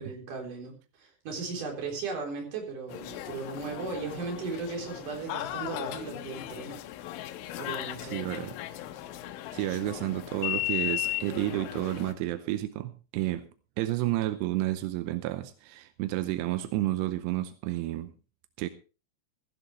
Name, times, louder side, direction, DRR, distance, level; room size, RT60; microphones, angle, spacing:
voice 1, 0.0-6.8 7.6-8.2, right 4 dB, 45° right, 1 dB, 5.0 m, -37 dB
sound 1, 2.9-12.1, left 14 dB, 80° left, 3.3 m, -36 dB
voice 2, 8.0-8.6 9.5-13.5 13.8-18.1 18.6-18.7, right 15 dB, 80° right, 11 dB, 2.5 m, -31 dB
15.5 x 14.0 x 3.3 m, 0.33 s
omnidirectional pair, 5.6 m